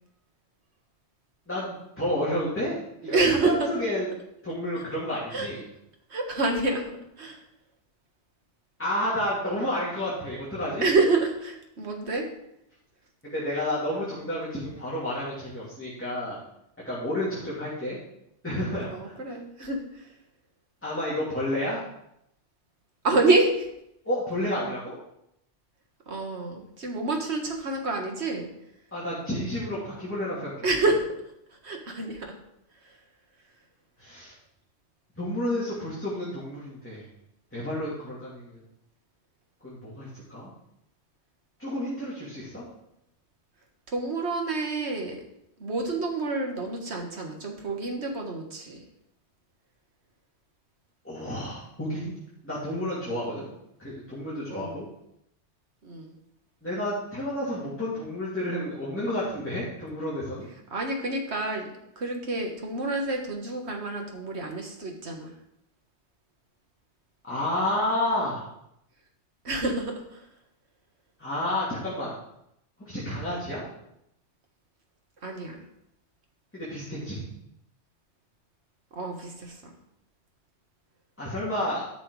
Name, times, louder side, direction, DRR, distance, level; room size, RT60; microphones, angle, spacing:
voice 1, 1.5-4.1 4.4-5.6 8.8-10.9 13.2-16.4 16.9-18.0 18.4-19.2 20.8-21.8 24.0-25.0 28.9-30.7 34.0-34.3 35.2-37.0 37.5-38.6 39.6-40.5 41.6-42.6 51.0-52.2 52.4-53.5 53.8-54.8 56.6-60.5 67.2-68.5 71.2-72.1 72.8-73.7 76.5-77.2 81.2-81.9, left 1 dB, 10° left, -8 dB, 2.6 m, -30 dB
voice 2, 3.1-3.7 5.3-5.5 6.1-6.9 7.2-7.4 10.8-12.3 18.9-20.1 23.0-23.7 26.1-28.5 30.6-31.0 31.6-32.3 43.9-45.2 45.6-48.8 54.5-54.8 55.8-56.1 60.7-61.7 62.0-65.3 69.4-70.2 75.2-75.6 78.9-79.7, right 3 dB, 60° right, 2 dB, 1.8 m, -28 dB
12.0 x 6.1 x 4.8 m, 0.79 s
omnidirectional pair, 1.3 m